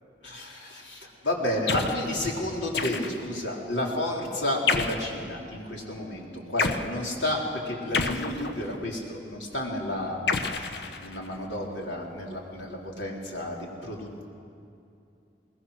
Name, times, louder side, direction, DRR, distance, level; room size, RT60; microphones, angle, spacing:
voice 1, 0.2-10.2 10.5-14.3, left 1 dB, 85° left, -1 dB, 3.7 m, -31 dB
sound 1, 1.7-2.1 2.7-3.4 4.7-5.1 6.6-6.9 7.9-8.8 10.3-11.3, left 4 dB, 65° left, 1.0 m, -29 dB
21.5 x 20.5 x 6.5 m, 2.6 s
head